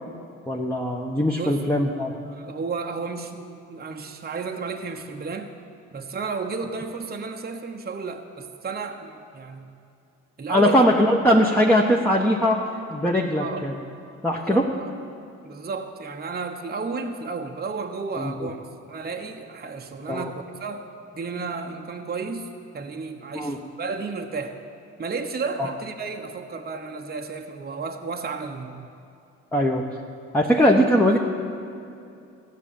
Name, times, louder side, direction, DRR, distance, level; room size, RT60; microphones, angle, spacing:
voice 1, 0.5-2.1 10.5-12.6 12.9-13.7 14.2-14.7 18.2-18.5 20.1-20.3 23.3-23.6 25.6-25.7 29.5-29.8 30.3-31.2, equal, 5° left, -1 dB, 1.2 m, -20 dB
voice 2, 1.3-5.5 5.9-9.7 10.4-10.9 13.3-13.6 14.3-14.9 15.4-20.9 21.1-22.5 22.7-24.6 25.0-28.9, right 4 dB, 25° right, 3 dB, 1.1 m, -33 dB
14.5 x 6.2 x 8.6 m, 2.6 s
hypercardioid pair, 55°, 35 cm